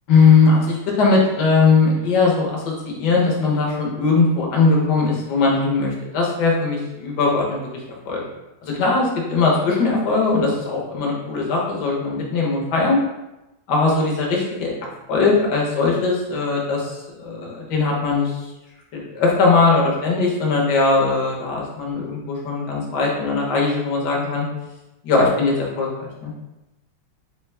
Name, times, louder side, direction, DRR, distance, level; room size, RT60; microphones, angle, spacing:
voice 1, 0.1-7.7 8.1-8.2 8.6-13.0 13.7-14.7 15.1-18.4 18.9-24.4 25.0-26.3, left 4 dB, 60° left, -3 dB, 1.4 m, -19 dB
4.8 x 2.2 x 3.2 m, 0.98 s
omnidirectional pair, 2.3 m